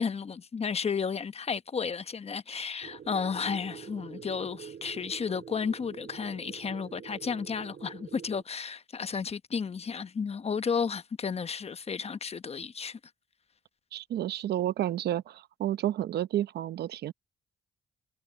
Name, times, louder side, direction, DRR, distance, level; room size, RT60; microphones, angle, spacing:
voice 1, 0.0-13.0, left 6 dB, 40° left, 1.0 m, -33 dB
sound 1, 2.8-8.4, right 7 dB, 60° right, 5.4 m, -46 dB
voice 2, 13.9-17.1, right 12 dB, 80° right, 0.9 m, -31 dB
cardioid pair, 80°, 17 cm